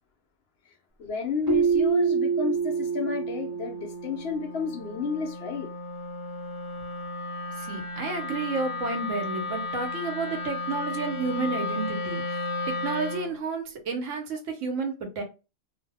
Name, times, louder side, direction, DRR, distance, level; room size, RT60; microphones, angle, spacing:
voice 1, 1.0-5.7, left 6 dB, 65° left, 0.8 m, -31 dB
Keyboard (musical), 1.5-4.3, right 6 dB, 20° right, 0.6 m, -26 dB
Wind instrument woodwind instrument, 1.8-13.4, left 2 dB, 30° left, 0.6 m, -35 dB
voice 2, 7.6-15.2, right 4 dB, 85° right, 1.1 m, -31 dB
2.7 x 2.1 x 3.3 m
omnidirectional pair, 1.2 m